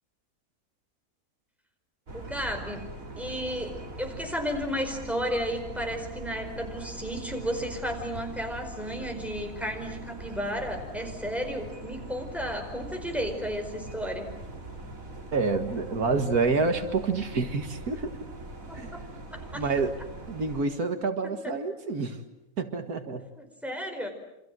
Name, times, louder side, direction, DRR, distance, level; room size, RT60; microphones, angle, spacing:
voice 1, 2.1-2.9 3.2-14.3 18.7-19.7 21.4-21.5 23.4-24.1, equal, ahead, 4 dB, 4.8 m, -33 dB
sound 1, 2.1-20.6, right 2 dB, 65° right, 3.2 m, -42 dB
voice 2, 15.3-18.1 18.7-19.0 19.5-19.9 20.3-22.2 22.6-23.3, right 4 dB, 85° right, 7 dB, 2.3 m, -28 dB
28.5 x 26.0 x 7.7 m, 0.90 s
omnidirectional pair, 1.5 m